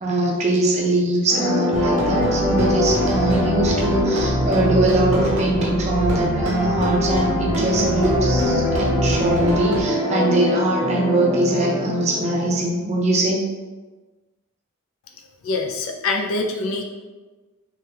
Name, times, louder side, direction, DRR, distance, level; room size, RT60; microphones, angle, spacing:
voice 1, 0.0-13.4, right 1 dB, 30° right, -2 dB, 0.5 m, -22 dB
sound 1, 1.3-12.6, left 1 dB, 40° left, 1.4 m, -24 dB
sound 2, 1.7-9.8, right 1 dB, 85° right, 0.5 m, -25 dB
voice 2, 15.4-16.8, left 3 dB, 70° left, 3 dB, 0.4 m, -24 dB
3.3 x 2.2 x 2.7 m, 1.2 s
head